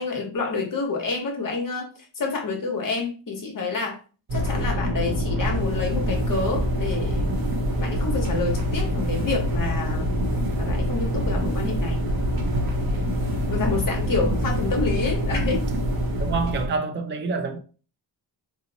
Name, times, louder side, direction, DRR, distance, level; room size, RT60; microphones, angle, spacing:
voice 1, 0.0-1.9 2.1-4.0 4.3-7.2 7.8-10.2 10.6-12.0 13.5-15.7, left 4 dB, 45° left, 1.0 m, -28 dB
sound 1, 4.3-16.7, equal, 55° right, 0.8 m, -25 dB
voice 2, 16.2-17.6, right 4 dB, 25° right, 0.4 m, -27 dB
2.9 x 2.0 x 3.8 m
wide cardioid pair, 135°, 44 cm